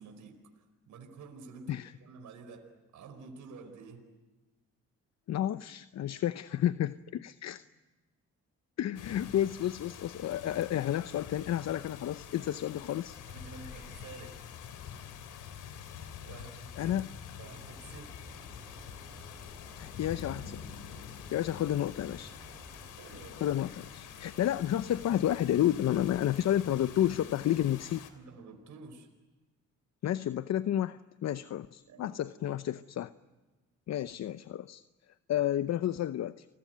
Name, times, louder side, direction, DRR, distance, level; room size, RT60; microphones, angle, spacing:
voice 1, 0.0-4.1 10.2-10.4 13.3-14.5 16.2-16.9 17.4-18.4 21.9-22.3 23.0-23.5 28.1-29.1 31.9-32.6 33.2-33.3, right 4 dB, 70° right, 6 dB, 4.8 m, -50 dB
voice 2, 5.3-7.6 8.8-13.2 16.8-17.1 19.8-20.6 21.3-22.3 23.4-28.0 30.0-33.1 33.9-34.8 35.3-36.5, left 11 dB, 60° left, 14 dB, 0.8 m, -31 dB
sound 1, 9.0-28.1, left 8 dB, 85° left, 3.0 m, -46 dB
sound 2, 17.4-22.9, right 1 dB, 10° right, 2.3 m, -54 dB
29.5 x 20.5 x 9.3 m, 1.2 s
cardioid pair, 90°, 30 cm